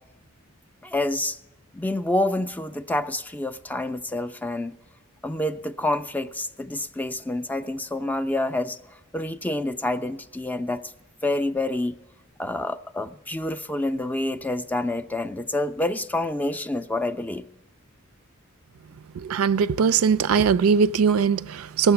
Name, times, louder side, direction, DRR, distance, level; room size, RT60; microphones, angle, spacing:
voice 1, 0.8-1.4 1.7-4.8 5.2-8.8 9.1-10.8 11.2-11.9 12.4-17.5, left 1 dB, 10° left, 0.3 m, -27 dB
voice 2, 19.2-21.9, right 6 dB, 80° right, 0.4 m, -20 dB
18.0 x 7.1 x 6.9 m
head